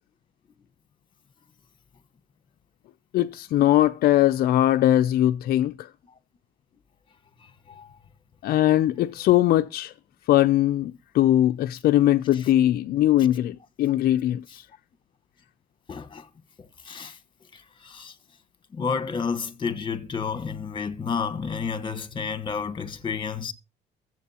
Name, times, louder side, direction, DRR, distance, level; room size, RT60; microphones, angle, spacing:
voice 1, 3.1-5.9 8.4-9.9 10.3-14.6, left 13 dB, 65° left, 0.5 m, -21 dB
voice 2, 15.9-16.3 16.8-17.2 17.5-18.1 18.7-23.5, left 5 dB, 30° left, 1.3 m, -30 dB
22.5 x 7.6 x 2.9 m
cardioid pair, 110°, 17 cm